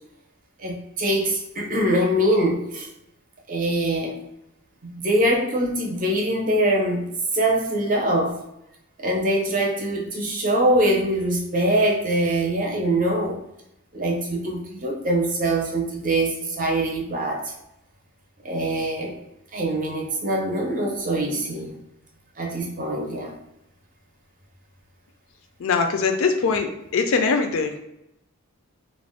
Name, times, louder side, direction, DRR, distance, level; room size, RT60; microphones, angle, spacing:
voice 1, 0.6-2.9 3.5-4.2 4.8-8.4 9.0-13.4 13.9-17.5 18.4-19.2 19.5-21.8 22.4-23.4, right 1 dB, 35° right, 0 dB, 0.6 m, -23 dB
voice 2, 25.6-26.7 26.9-27.8, left 5 dB, 65° left, 5 dB, 0.4 m, -21 dB
2.4 x 2.1 x 3.4 m, 0.84 s
head